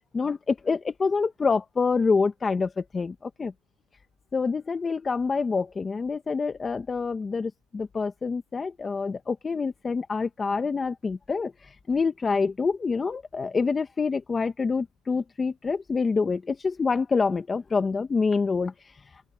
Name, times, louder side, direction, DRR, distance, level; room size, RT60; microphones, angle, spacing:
voice 1, 0.1-3.5 4.3-18.7, left 4 dB, 20° left, 1.3 m, -26 dB
open air
cardioid pair, 130°, 0 cm